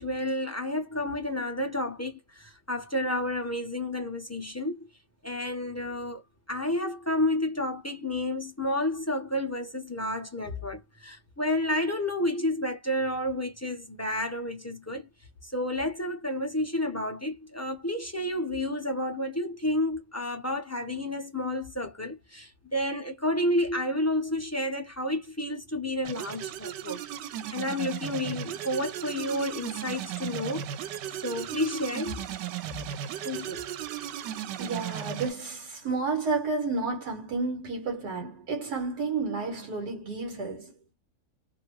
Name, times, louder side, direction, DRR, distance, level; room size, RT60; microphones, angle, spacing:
voice 1, 0.0-4.9 5.2-15.1 15.4-27.0 27.2-30.7 31.2-32.2 33.2-33.6, left 1 dB, 20° left, 0.4 m, -30 dB
sound 1, 26.0-35.3, right 10 dB, 90° right, 1.2 m, -36 dB
voice 2, 34.6-40.8, right 4 dB, 70° right, 1.6 m, -31 dB
2.9 x 2.6 x 3.0 m
omnidirectional pair, 1.8 m